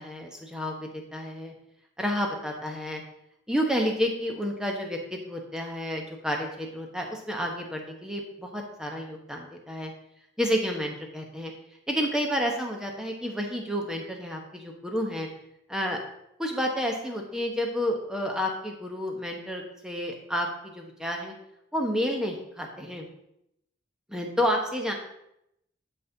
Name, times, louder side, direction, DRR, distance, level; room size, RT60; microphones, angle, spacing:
voice 1, 0.0-1.5 2.0-3.0 3.5-9.9 10.4-11.5 11.9-15.3 15.7-16.0 16.4-21.3 21.7-23.1 24.1-24.9, equal, 5° right, 1 dB, 1.1 m, -30 dB
10.5 x 5.4 x 4.0 m, 0.80 s
head